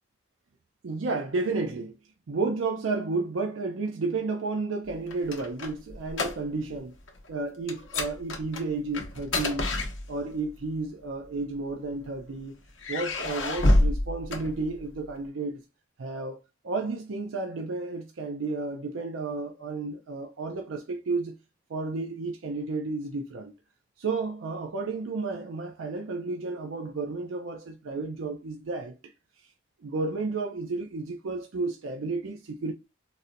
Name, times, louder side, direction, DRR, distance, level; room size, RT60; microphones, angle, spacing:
voice 1, 0.8-2.0 2.3-6.9 7.3-9.7 10.1-12.5 12.9-15.6 16.0-16.4 16.6-21.4 21.7-23.5 24.0-29.1 29.8-32.7, right 3 dB, 90° right, 0.5 m, -32 dB
sound 1, 4.9-6.8 7.0-7.3 7.7-10.5 11.3-12.2 12.8-15.1, left 1 dB, 75° left, 0.8 m, -28 dB
4.1 x 2.1 x 2.5 m
head